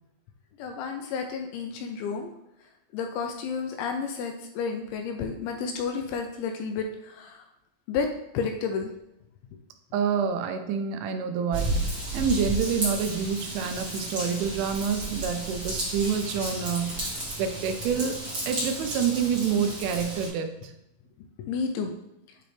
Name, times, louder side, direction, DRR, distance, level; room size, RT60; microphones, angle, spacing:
voice 1, 0.6-2.3 2.9-7.4 7.9-8.1 8.3-8.9 21.4-21.9, left 5 dB, 85° left, 4 dB, 2.7 m, -31 dB
voice 2, 9.9-18.2 18.5-20.7, right 6 dB, 85° right, 7 dB, 2.9 m, -28 dB
Raindrop / Vehicle horn car horn honking / Trickle dribble, 11.5-20.3, right 1 dB, 30° right, 1.9 m, -33 dB
8.8 x 3.8 x 3.3 m, 0.83 s
omnidirectional pair, 5.5 m